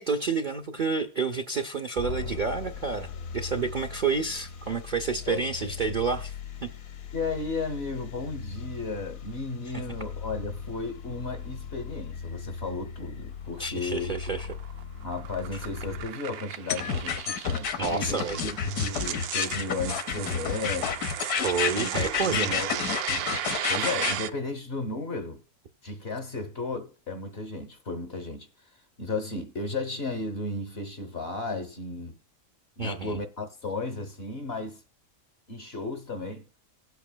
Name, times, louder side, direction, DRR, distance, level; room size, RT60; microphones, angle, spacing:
voice 1, 0.0-6.3 6.6-6.7 9.7-9.8 13.6-14.5 15.5-15.6 17.8-18.4 21.4-22.6 32.8-33.2, right 5 dB, 55° right, 0.5 m, -29 dB
sound 1, 2.0-16.1, left 6 dB, 70° left, 1.2 m, -39 dB
voice 2, 7.1-14.2 15.0-21.0 21.7-25.4 25.8-28.5 29.0-32.2 32.8-34.8 35.5-36.4, left 3 dB, 50° left, 1.0 m, -34 dB
sound 2, 13.6-24.3, right 10 dB, 85° right, 1.1 m, -36 dB
sound 3, 16.7-24.2, left 7 dB, 85° left, 1.4 m, -29 dB
18.0 x 8.2 x 2.2 m
omnidirectional pair, 1.6 m